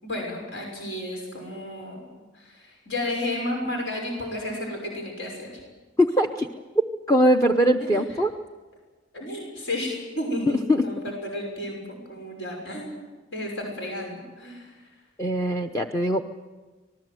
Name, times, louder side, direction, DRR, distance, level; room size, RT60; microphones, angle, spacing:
voice 1, 0.0-2.1 2.3-5.6 7.8-7.9 9.1-10.6 10.8-13.0 13.3-14.7, left 1 dB, 70° left, 1 dB, 6.2 m, -32 dB
voice 2, 6.0-6.5 7.1-8.3 10.5-10.8 15.2-16.2, equal, 15° left, 5 dB, 0.8 m, -21 dB
25.5 x 19.5 x 7.8 m, 1.3 s
head